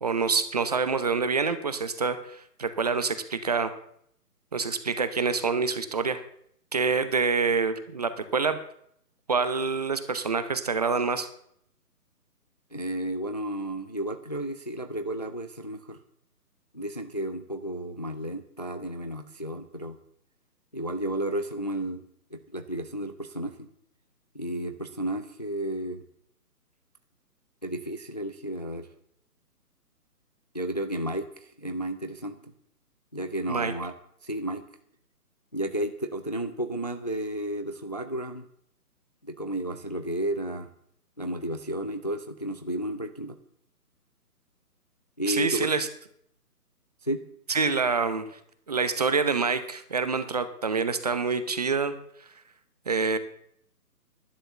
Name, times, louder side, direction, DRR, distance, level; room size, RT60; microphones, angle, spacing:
voice 1, 0.0-3.7 4.5-6.2 6.7-8.6 9.3-11.3 33.5-33.7 45.3-45.9 47.5-48.2 48.7-51.9 52.9-53.2, right 4 dB, 25° right, 11 dB, 0.7 m, -26 dB
voice 2, 12.7-16.0 16.7-20.0 20.7-22.0 22.3-23.7 24.3-26.0 27.6-28.9 30.5-32.5 33.1-33.9 34.2-34.6 35.5-38.5 39.2-40.7 41.2-43.4 45.2-45.7 47.0-47.2, right 1 dB, 30° left, 8 dB, 0.5 m, -32 dB
11.5 x 10.0 x 6.9 m, 0.69 s
figure-of-eight pair, 150°, 47 cm